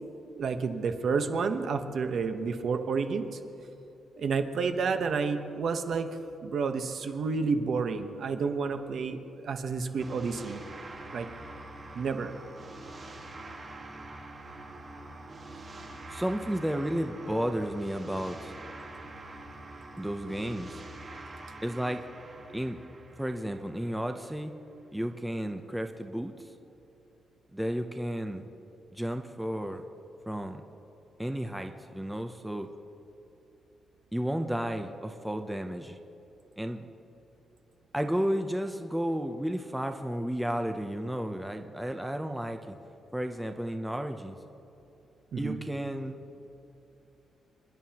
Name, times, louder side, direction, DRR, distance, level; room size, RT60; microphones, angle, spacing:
voice 1, 0.4-3.4 4.2-10.6 11.1-11.3 11.9-12.4 45.3-45.6, right 5 dB, 55° right, 7 dB, 1.0 m, -30 dB
sound 1, 10.0-24.3, right 2 dB, 30° right, 1.4 m, -45 dB
voice 2, 16.1-18.5 20.0-20.8 21.6-22.0 22.5-22.8 23.2-24.5 24.9-26.5 27.5-28.4 28.9-29.8 30.3-30.6 31.2-32.7 34.1-36.0 36.6-36.8 37.9-42.8 43.1-44.4 45.4-46.2, equal, 5° right, 5 dB, 0.6 m, -32 dB
27.5 x 11.0 x 2.9 m, 2.8 s
cardioid pair, 150°, 0 cm